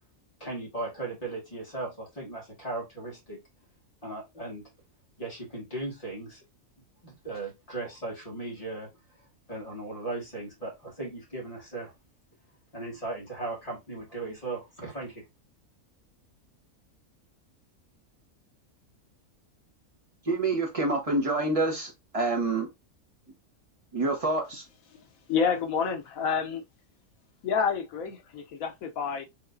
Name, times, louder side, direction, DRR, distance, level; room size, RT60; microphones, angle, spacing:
voice 1, 0.4-3.4 4.0-4.7 5.2-6.4 7.0-8.9 9.5-11.9 12.7-15.3, right 2 dB, 25° left, 1.9 m, -37 dB
voice 2, 20.2-22.7 23.9-24.6, right 2 dB, 25° right, 1.1 m, -27 dB
voice 3, 25.3-26.6 27.4-29.3, left 6 dB, 75° left, 1.1 m, -28 dB
4.6 x 3.2 x 2.5 m
omnidirectional pair, 1.5 m